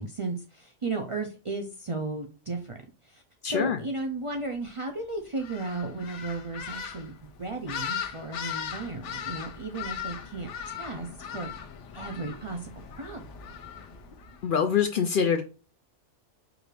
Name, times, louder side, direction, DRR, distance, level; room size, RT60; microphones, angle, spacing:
voice 1, 0.0-2.8 3.0-11.6 11.9-13.3, right 3 dB, 40° right, 2 dB, 0.4 m, -35 dB
voice 2, 3.4-3.8 14.4-15.4, left 7 dB, 60° left, 7 dB, 0.6 m, -24 dB
sound 1, 5.4-14.5, left 7 dB, 90° left, 1.0 m, -39 dB
4.8 x 2.5 x 3.2 m, 0.35 s
omnidirectional pair, 1.2 m